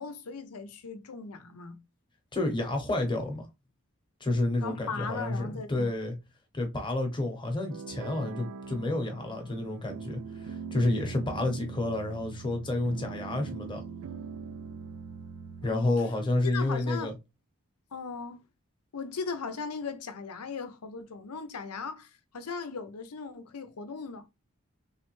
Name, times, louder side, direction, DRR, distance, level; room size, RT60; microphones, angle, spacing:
voice 1, 0.0-1.8 4.6-5.9 15.6-15.9 16.4-17.1 17.9-18.4 18.9-24.3, left 5 dB, 80° left, 0.6 m, -38 dB
voice 2, 2.3-3.4 4.2-6.1 6.5-13.8 15.6-17.1, left 2 dB, 20° left, 0.9 m, -30 dB
sound 1, 7.7-15.7, right 5 dB, 65° right, 0.5 m, -42 dB
3.3 x 3.3 x 3.1 m
head